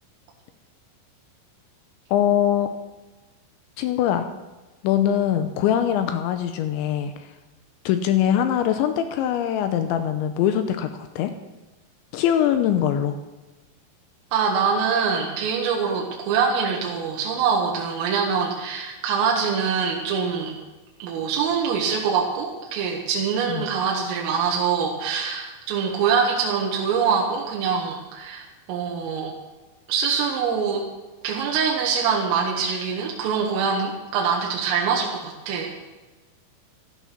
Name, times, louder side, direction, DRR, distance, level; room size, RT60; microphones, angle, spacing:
voice 1, 2.1-2.7 3.8-4.3 4.8-7.3 7.9-11.3 12.1-13.2 23.5-23.7, left 10 dB, 85° left, 9 dB, 2.8 m, -22 dB
voice 2, 14.3-20.5 21.0-29.3 29.9-30.8 31.2-35.7, right 6 dB, 80° right, -1 dB, 4.2 m, -24 dB
15.0 x 12.5 x 6.1 m, 1.2 s
omnidirectional pair, 5.9 m